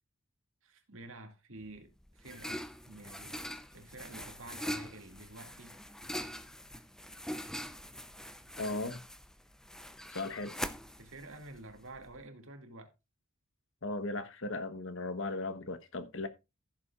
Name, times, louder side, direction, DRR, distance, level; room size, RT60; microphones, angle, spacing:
voice 1, 0.6-5.8 10.4-10.5 11.0-12.9, right 2 dB, 65° right, 2.2 m, -50 dB
sound 1, 1.6-12.2, equal, 5° left, 0.6 m, -43 dB
voice 2, 8.6-9.0 10.1-10.5 13.8-16.3, left 2 dB, 60° left, 1.1 m, -37 dB
15.5 x 6.9 x 2.4 m
head